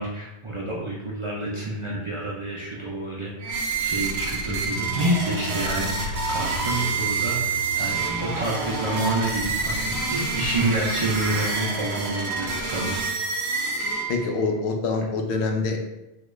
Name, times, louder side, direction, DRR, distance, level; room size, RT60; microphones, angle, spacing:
voice 1, 0.0-13.0, right 1 dB, 50° right, -4 dB, 0.4 m, -28 dB
sound 1, 3.4-14.5, right 4 dB, 80° right, 0.8 m, -28 dB
sound 2, 3.7-9.9, left 2 dB, 50° left, 0.4 m, -38 dB
voice 2, 14.1-15.9, left 3 dB, 90° left, 3 dB, 0.8 m, -25 dB
3.7 x 2.2 x 3.1 m, 0.93 s
omnidirectional pair, 1.1 m